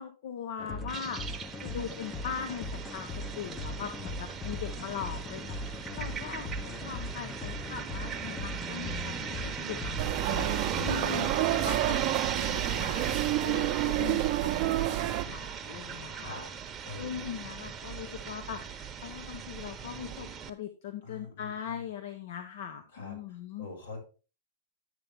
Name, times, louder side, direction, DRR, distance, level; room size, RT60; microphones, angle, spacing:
voice 1, 0.0-16.3 17.0-23.7, left 8 dB, 65° left, 7 dB, 1.1 m, -41 dB
sound 1, 0.6-11.1, left 2 dB, 20° left, 0.8 m, -40 dB
sound 2, 0.9-20.5, right 7 dB, 20° right, 1.0 m, -38 dB
voice 2, 5.9-7.0 16.2-16.5 16.8-17.3 21.0-21.8 22.9-24.0, left 3 dB, 85° left, -1 dB, 5.3 m, -46 dB
sound 3, 10.0-15.2, right 14 dB, 45° right, 0.8 m, -29 dB
11.0 x 6.8 x 3.6 m, 0.34 s
hypercardioid pair, 115°, 0 cm